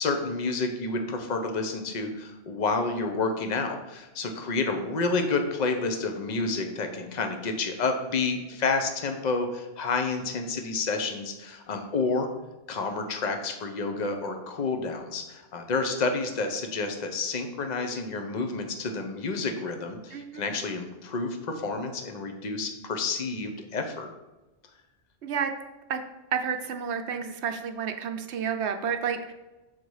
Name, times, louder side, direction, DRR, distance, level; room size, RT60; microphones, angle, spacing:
voice 1, 0.0-12.3 12.7-24.1, left 3 dB, 45° left, 5 dB, 0.8 m, -29 dB
voice 2, 20.1-20.5 25.2-25.5 25.9-26.0 26.3-29.3, right 7 dB, 75° right, 6 dB, 0.9 m, -30 dB
6.1 x 4.1 x 4.7 m, 1.1 s
omnidirectional pair, 1.2 m